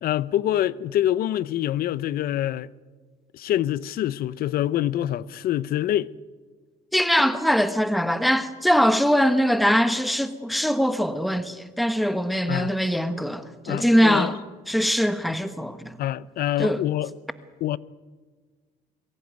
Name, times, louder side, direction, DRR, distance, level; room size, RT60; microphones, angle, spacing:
voice 1, 0.0-2.7 3.3-6.1 12.5-12.7 13.7-14.3 16.0-17.1 17.6-17.8, left 12 dB, 65° left, 0.6 m, -25 dB
voice 2, 6.9-14.4 14.7-16.0 16.6-16.8, equal, ahead, 1.1 m, -22 dB
23.0 x 15.0 x 9.4 m
cardioid pair, 110°, 17 cm